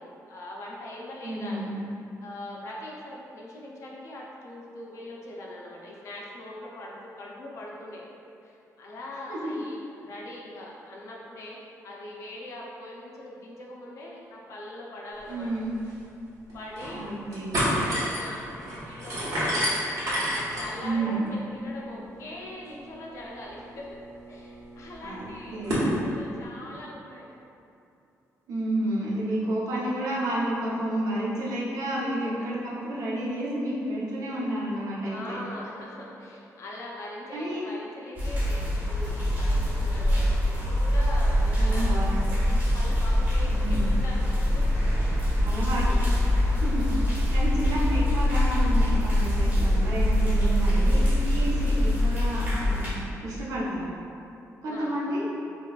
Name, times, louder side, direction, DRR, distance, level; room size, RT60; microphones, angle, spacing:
voice 1, 0.0-1.7 2.2-8.0 8.4-11.6 11.8-15.5 16.5-17.0 17.5-19.8 20.3-24.0 24.3-27.3 29.2-30.0 32.2-32.3 35.0-44.6 46.5-46.6 47.6-47.9 54.6-55.2, left 1 dB, 55° left, -3 dB, 0.6 m, -42 dB
voice 2, 1.2-1.8 9.3-9.5 15.3-15.7 16.9-17.5 20.8-21.2 25.0-25.3 25.5-25.8 28.5-35.4 37.3-37.6 41.6-42.1 43.5-44.0 45.4-46.0 46.6-53.9 54.6-55.3, right 1 dB, 90° right, -6 dB, 0.8 m, -30 dB
sound 1, 15.5-15.6 15.9-16.0 16.5-17.0 17.3-25.9, equal, 70° right, 1.1 m, -31 dB
sound 2, 38.2-52.9, left 1 dB, 30° right, 1.1 m, -23 dB
5.8 x 2.3 x 2.4 m, 2.7 s
wide cardioid pair, 165°, 6 cm